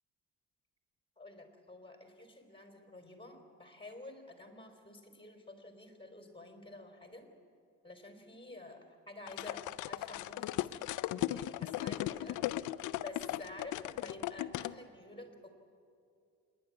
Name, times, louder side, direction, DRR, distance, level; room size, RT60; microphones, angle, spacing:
voice 1, 1.2-7.3 7.8-10.9 11.3-12.4 13.0-15.5, left 2 dB, 15° left, 4 dB, 3.9 m, -50 dB
sound 1, 9.3-14.7, left 15 dB, 85° left, 0.5 m, -37 dB
27.0 x 11.0 x 9.7 m, 2.4 s
cardioid pair, 90°, 30 cm